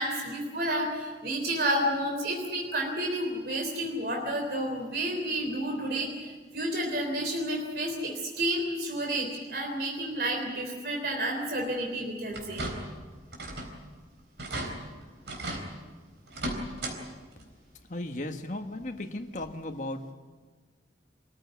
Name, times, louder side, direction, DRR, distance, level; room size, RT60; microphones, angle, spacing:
voice 1, 0.0-12.6, right 1 dB, 55° right, 1 dB, 3.5 m, -30 dB
sound 1, 12.3-13.0 13.3-13.8 14.1-14.2 14.4-14.7 15.3-15.6 16.3-17.0 17.3-17.4 18.8-18.9 19.4-19.5, right 1 dB, 80° right, 4.0 m, -35 dB
voice 2, 17.9-20.1, left 1 dB, 45° left, 5 dB, 1.5 m, -36 dB
24.5 x 14.5 x 9.5 m, 1.5 s
head